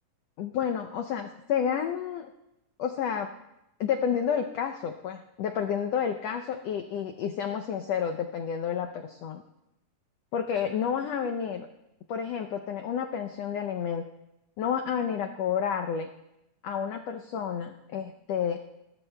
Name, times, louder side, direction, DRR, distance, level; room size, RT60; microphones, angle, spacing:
voice 1, 0.4-2.3 2.8-3.3 3.8-9.4 10.3-11.7 12.1-14.0 14.6-16.1 16.6-18.6, left 7 dB, 85° left, 5 dB, 1.4 m, -30 dB
28.5 x 13.0 x 2.2 m, 0.87 s
omnidirectional pair, 3.7 m